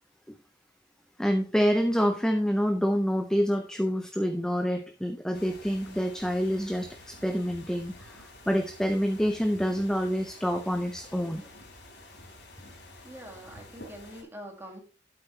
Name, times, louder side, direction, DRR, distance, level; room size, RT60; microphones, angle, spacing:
voice 1, 1.2-11.5, equal, 5° left, 6 dB, 0.5 m, -27 dB
sound 1, 5.3-14.2, left 1 dB, 70° left, 3.6 m, -49 dB
voice 2, 13.0-14.8, equal, 15° right, 2 dB, 2.0 m, -44 dB
8.8 x 8.0 x 3.1 m, 0.35 s
head